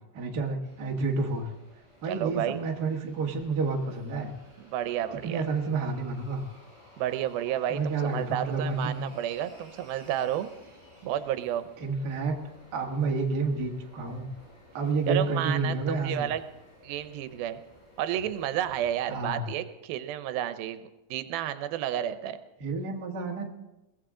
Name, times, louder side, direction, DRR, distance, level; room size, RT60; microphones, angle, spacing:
voice 1, 0.1-1.5 2.0-4.3 5.2-6.4 7.7-9.0 11.8-12.4 12.7-14.3 14.7-16.3 19.1-19.4 22.6-23.5, right 4 dB, 40° right, 0 dB, 1.5 m, -29 dB
sound 1, 0.6-19.3, left 1 dB, 10° left, 5.8 m, -55 dB
voice 2, 2.1-2.6 4.6-5.4 7.0-10.5 11.0-11.7 15.1-16.4 16.8-17.6 18.0-20.8 21.1-22.4, right 11 dB, 85° right, 11 dB, 2.6 m, -31 dB
22.0 x 17.0 x 3.8 m, 0.97 s
omnidirectional pair, 4.2 m